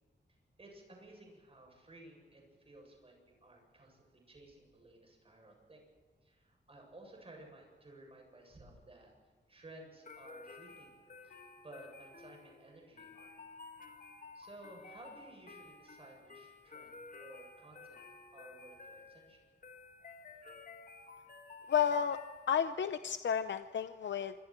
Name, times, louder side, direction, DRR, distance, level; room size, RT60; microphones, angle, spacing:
voice 1, 0.6-5.8 6.2-9.1 9.5-11.0 11.2-13.3 14.3-18.0 18.3-19.5, right 2 dB, 30° right, 1 dB, 7.8 m, -56 dB
sound 1, 10.0-22.8, left 4 dB, 45° left, 2.3 m, -53 dB
voice 2, 21.7-22.2 22.5-24.3, left 8 dB, 85° left, 10 dB, 0.7 m, -32 dB
27.0 x 24.5 x 4.6 m, 1.5 s
wide cardioid pair, 150°, 18 cm